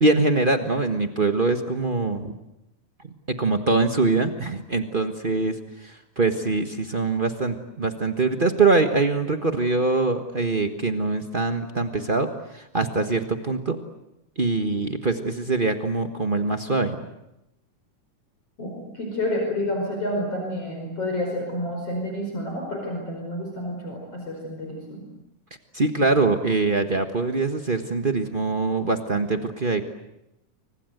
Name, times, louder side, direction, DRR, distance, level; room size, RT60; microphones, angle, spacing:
voice 1, 0.0-2.4 3.3-13.8 14.4-17.0 25.7-29.8, right 3 dB, 70° right, 6 dB, 0.5 m, -23 dB
voice 2, 18.6-25.0, left 1 dB, 45° left, 1 dB, 6.2 m, -29 dB
29.5 x 25.0 x 8.0 m, 0.86 s
omnidirectional pair, 3.6 m